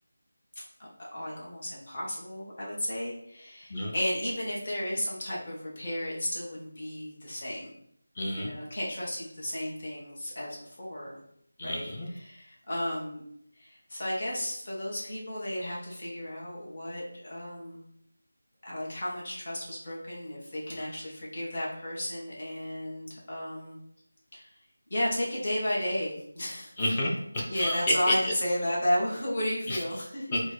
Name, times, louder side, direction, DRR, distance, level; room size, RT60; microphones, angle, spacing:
voice 1, 1.0-7.7 8.4-11.2 11.6-11.9 12.2-13.2 13.6-17.8 18.6-23.8 24.3-24.5 24.9-26.7 27.5-30.3, left 1 dB, 40° left, -5 dB, 1.5 m, -33 dB
voice 2, 8.2-8.5 11.6-12.1 26.8-28.3 29.7-29.8 30.3-30.5, left 1 dB, 20° left, -1 dB, 0.6 m, -29 dB
4.4 x 2.2 x 4.4 m, 0.70 s
figure-of-eight pair, 175°, 0 cm